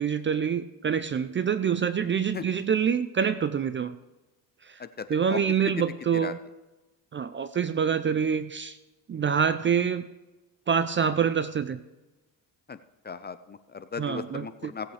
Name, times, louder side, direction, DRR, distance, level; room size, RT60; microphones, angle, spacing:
voice 1, 0.0-4.0 4.6-4.8 5.1-6.4 7.1-8.8 9.1-10.1 10.7-11.8 14.0-14.7, right 7 dB, 30° right, 13 dB, 0.5 m, -26 dB
voice 2, 4.8-5.4 6.2-6.3 12.7-12.8 13.0-14.9, left 6 dB, 25° left, 12 dB, 0.5 m, -37 dB
17.0 x 8.2 x 3.4 m, 1.1 s
cardioid pair, 105°, 43 cm